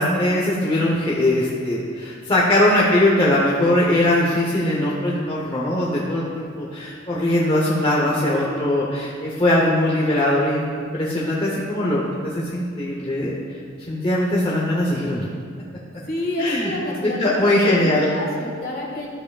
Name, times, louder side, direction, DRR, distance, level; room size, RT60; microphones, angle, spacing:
voice 1, 0.0-15.3 16.4-16.7 17.0-18.1, left 1 dB, 25° left, -4 dB, 0.8 m, -21 dB
voice 2, 8.0-8.6 16.1-17.3 17.6-19.1, left 1 dB, 50° left, -1 dB, 1.6 m, -29 dB
12.0 x 7.4 x 2.4 m, 2.1 s
head